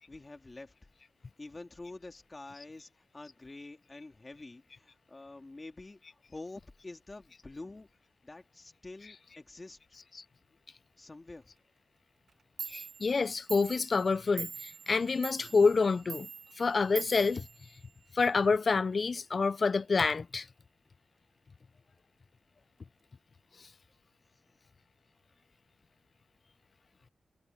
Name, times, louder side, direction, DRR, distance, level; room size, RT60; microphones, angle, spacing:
voice 1, 0.1-0.7 1.4-6.0 6.3-7.9 8.2-9.8 11.0-11.5 24.5-24.6, left 2 dB, 25° left, 2.6 m, -47 dB
Clock, 12.3-12.4 12.6-18.2, right 6 dB, 80° right, 0.6 m, -44 dB
voice 2, 12.7-16.3 16.6-17.5 18.1-20.5, left 4 dB, 45° left, 0.5 m, -28 dB
wide cardioid pair, 130°, 0 cm